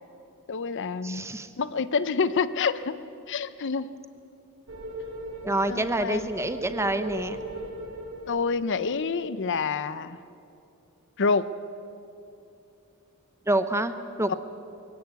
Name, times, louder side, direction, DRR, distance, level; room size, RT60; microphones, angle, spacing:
voice 1, 0.5-1.2 1.6-3.0 3.3-3.9 5.7-6.3 8.3-10.2 11.2-11.5 14.3-14.4, left 5 dB, 55° left, 15 dB, 0.6 m, -27 dB
voice 2, 1.0-1.5 5.4-7.4 13.5-14.3, right 1 dB, 10° right, 10 dB, 0.8 m, -27 dB
sound 1, 4.7-9.1, right 1 dB, 65° right, 3.0 m, -38 dB
21.5 x 17.5 x 8.1 m, 2.7 s
head